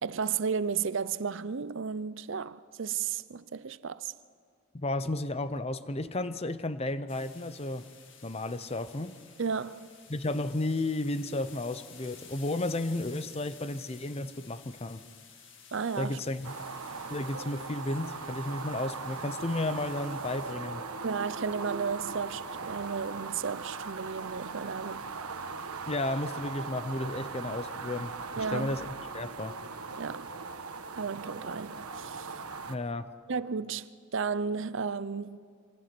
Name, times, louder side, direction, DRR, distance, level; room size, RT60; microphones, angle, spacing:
voice 1, 0.0-4.1 9.4-9.9 15.7-16.2 21.0-25.1 28.4-28.8 30.0-30.3 31.0-32.3 33.3-35.5, right 6 dB, 55° right, 0.5 m, -33 dB
voice 2, 4.7-7.9 8.2-9.2 10.1-15.0 16.0-16.5 17.1-20.8 25.9-28.9 29.1-29.6 32.7-33.1, left 2 dB, 25° left, 0.7 m, -33 dB
sound 1, 7.1-20.5, left 7 dB, 55° left, 2.2 m, -53 dB
sound 2, 16.4-32.7, right 4 dB, 85° right, 1.3 m, -39 dB
26.0 x 26.0 x 6.1 m
head